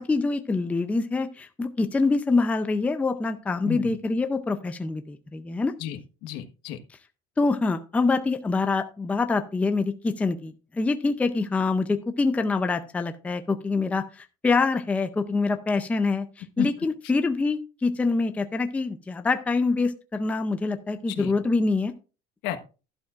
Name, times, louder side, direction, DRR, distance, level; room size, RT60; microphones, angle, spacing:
voice 1, 0.0-5.7 7.4-14.0 14.4-16.3 16.6-21.9, left 3 dB, 5° left, 8 dB, 0.5 m, -25 dB
voice 2, 5.8-6.8 16.6-16.7 21.2-21.3 22.4-22.6, left 12 dB, 65° left, 6 dB, 1.3 m, -32 dB
12.0 x 11.5 x 2.5 m, 0.33 s
cardioid pair, 175°, 19 cm